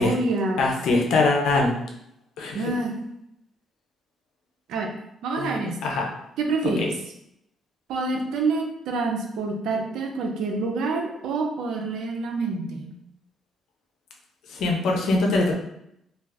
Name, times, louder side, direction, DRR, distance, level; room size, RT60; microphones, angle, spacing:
voice 1, 0.0-0.7 2.5-2.9 4.7-4.9 5.2-5.8 6.4-6.9 7.9-12.9, right 3 dB, 80° right, 2 dB, 0.5 m, -27 dB
voice 2, 0.6-1.7 2.4-2.6 5.4-5.5 5.8-6.1 6.8-6.9 14.5-15.5, left 3 dB, 75° left, 1 dB, 0.6 m, -22 dB
2.5 x 2.3 x 3.4 m, 0.79 s
cardioid pair, 90°, 0 cm